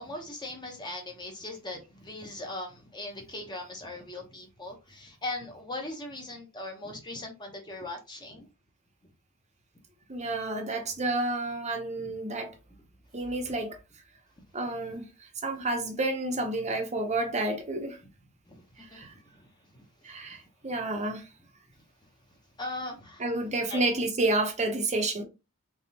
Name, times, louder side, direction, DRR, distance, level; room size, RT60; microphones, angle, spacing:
voice 1, 0.0-8.5 12.0-12.1 13.4-13.5 14.4-14.5 18.5-18.6 18.9-19.0 19.3-19.4 19.7-19.8 22.6-23.2 23.7-23.8, left 2 dB, 20° left, 0.9 m, -39 dB
voice 2, 10.1-12.5 13.1-13.8 14.5-15.1 15.4-18.0 18.8-19.1 20.0-21.3 23.2-25.2, right 2 dB, 30° right, 0.7 m, -30 dB
3.5 x 3.2 x 2.8 m
head